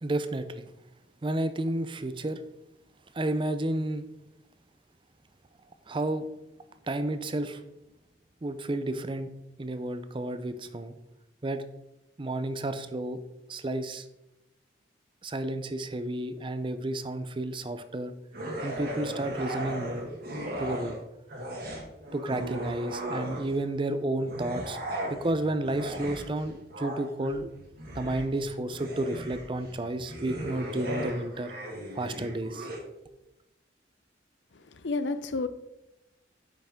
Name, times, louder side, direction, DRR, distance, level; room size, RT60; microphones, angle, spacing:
voice 1, 0.0-0.7 1.2-2.4 3.1-4.1 5.9-6.2 6.9-7.6 8.4-9.3 9.6-10.9 11.4-11.6 12.2-13.2 13.5-14.1 15.2-18.1 18.6-20.3 20.6-21.0 22.1-24.8 25.1-27.5 27.9-31.5 31.9-32.7, right 1 dB, 25° right, 0.5 m, -31 dB
sound 1, 18.3-21.0 21.3-23.7 24.2-32.8, right 1 dB, 55° right, 1.9 m, -37 dB
voice 2, 34.5-35.5, left 3 dB, 75° left, 0.6 m, -31 dB
8.8 x 5.8 x 3.6 m
head